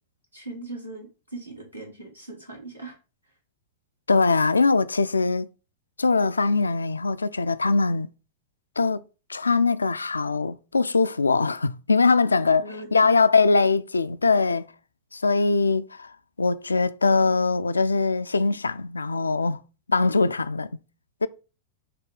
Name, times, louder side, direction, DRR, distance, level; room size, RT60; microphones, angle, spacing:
voice 1, 0.3-3.0 12.3-13.1, right 2 dB, 85° right, 2.1 m, -40 dB
voice 2, 4.1-5.5 6.0-8.1 8.8-9.0 9.3-12.6 12.9-14.7 15.1-19.6 19.9-20.7 21.2-21.3, left 4 dB, 75° left, 0.3 m, -22 dB
6.7 x 2.8 x 5.1 m
figure-of-eight pair, 95°, 0 cm